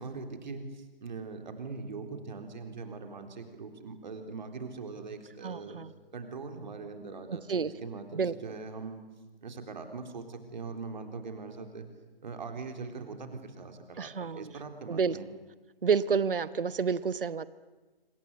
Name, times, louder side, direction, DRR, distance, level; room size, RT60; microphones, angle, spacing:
voice 1, 0.0-5.8 6.1-9.0 9.4-11.9 12.2-15.3, right 4 dB, 50° right, 5 dB, 3.9 m, -41 dB
voice 2, 5.4-5.9 7.3-7.7 8.1-8.3 14.0-14.5 14.9-15.2 15.8-17.4, right 6 dB, 65° right, 16 dB, 1.1 m, -29 dB
27.0 x 26.5 x 8.0 m, 1.2 s
figure-of-eight pair, 145°, 29 cm